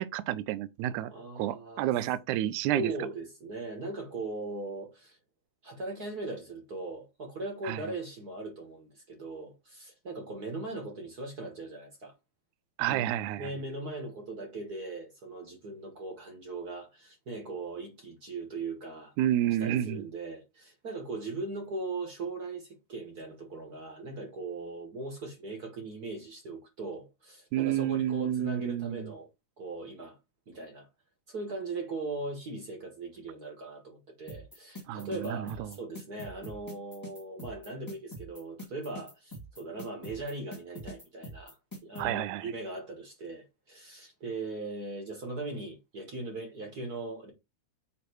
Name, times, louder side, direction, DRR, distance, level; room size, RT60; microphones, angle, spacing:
voice 1, 0.0-2.9 7.6-7.8 12.8-13.5 19.2-20.1 27.5-29.1 34.9-35.7 42.0-42.5, right 12 dB, 80° right, 1.9 m, -30 dB
voice 2, 1.1-1.9 2.7-5.2 5.6-12.1 12.9-13.1 13.4-19.1 19.6-29.3 29.6-30.2 30.5-30.9 31.3-41.6 41.8-47.3, right 3 dB, 45° right, 1.2 m, -39 dB
sound 1, 34.3-42.1, equal, 25° left, 0.4 m, -44 dB
8.2 x 3.0 x 4.5 m
omnidirectional pair, 3.8 m